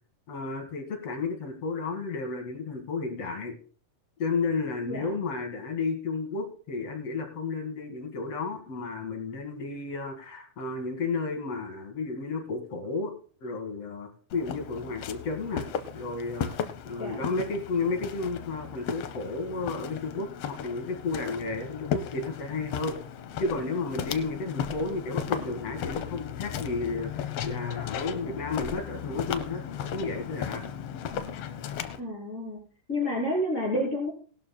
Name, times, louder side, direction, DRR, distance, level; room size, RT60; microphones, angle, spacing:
voice 1, 0.3-3.5 4.2-13.1 13.4-16.5 16.8-23.0 23.4-29.6 29.9-30.6, left 4 dB, 55° left, 4 dB, 2.7 m, -32 dB
voice 2, 4.8-5.2 17.0-17.2 32.0-32.6 32.9-34.1, left 1 dB, 20° left, -3 dB, 3.5 m, -29 dB
Walk footsteps, 14.3-32.0, left 8 dB, 85° left, 1.4 m, -36 dB
19.0 x 12.5 x 2.2 m, 0.42 s
omnidirectional pair, 3.8 m